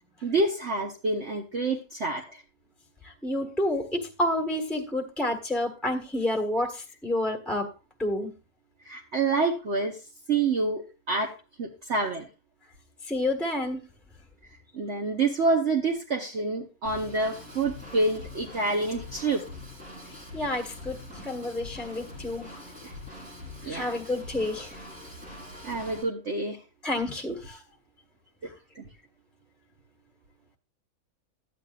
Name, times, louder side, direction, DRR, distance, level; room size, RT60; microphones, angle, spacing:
voice 1, 0.2-2.4 8.8-10.0 10.3-12.3 14.7-19.4 22.8-22.9 23.6-23.9 25.6-26.6 27.3-27.4 28.7-28.9, right 3 dB, 50° right, 0 dB, 1.4 m, -27 dB
voice 2, 3.0-7.7 8.0-8.3 13.1-13.8 20.3-22.5 23.6-24.7 26.8-27.6, left 1 dB, ahead, 1 dB, 1.5 m, -29 dB
Drum kit / Drum, 16.8-26.0, left 2 dB, 80° right, 7.3 m, -43 dB
13.5 x 9.1 x 2.5 m, 0.31 s
omnidirectional pair, 1.5 m